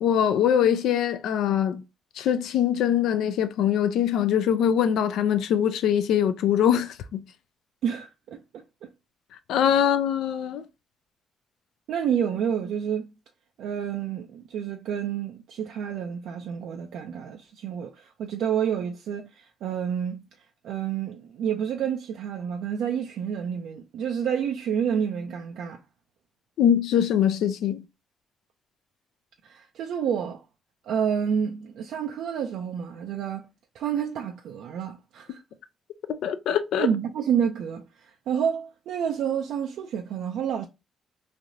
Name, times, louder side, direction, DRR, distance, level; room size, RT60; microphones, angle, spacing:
voice 1, 0.0-1.8 2.2-7.2 9.5-10.6 26.6-27.8 36.2-36.9, left 9 dB, 80° left, 0.4 m, -23 dB
voice 2, 7.8-8.6 11.9-13.1 13.6-20.2 20.6-25.8 29.4-30.4 30.8-33.5 33.7-35.4 36.8-40.7, right 8 dB, 80° right, 0.4 m, -29 dB
3.2 x 2.5 x 2.6 m
cardioid pair, 90°, 0 cm